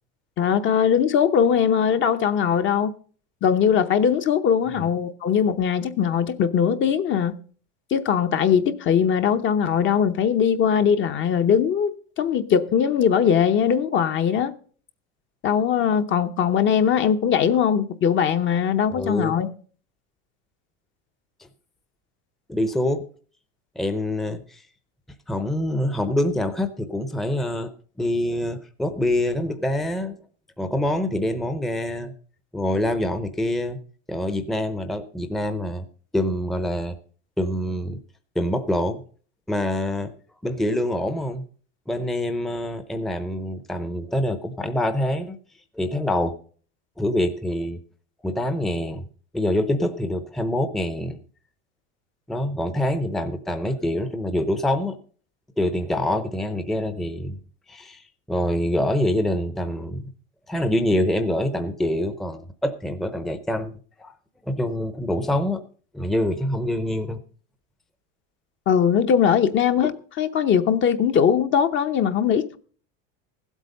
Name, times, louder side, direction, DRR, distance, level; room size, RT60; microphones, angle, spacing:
voice 1, 0.4-2.9 3.4-7.4 7.9-14.5 15.4-19.5 68.7-69.9 70.2-72.6, left 8 dB, 35° left, 0.9 m, -20 dB
voice 2, 18.9-19.4 22.5-23.0 23.8-24.6 25.3-27.7 28.0-30.2 30.6-32.1 32.5-33.8 34.1-35.8 36.1-37.0 37.4-38.0 38.3-39.0 39.5-40.1 40.4-41.4 41.9-45.4 45.8-46.3 47.0-47.8 48.2-49.0 49.3-51.2 52.3-55.0 55.6-57.4 57.7-60.0 60.5-63.7 64.0-64.1 64.5-65.6 65.9-67.2 69.8-69.9, left 1 dB, ahead, 0.7 m, -25 dB
15.0 x 8.2 x 5.3 m
supercardioid pair, 135°, 34 cm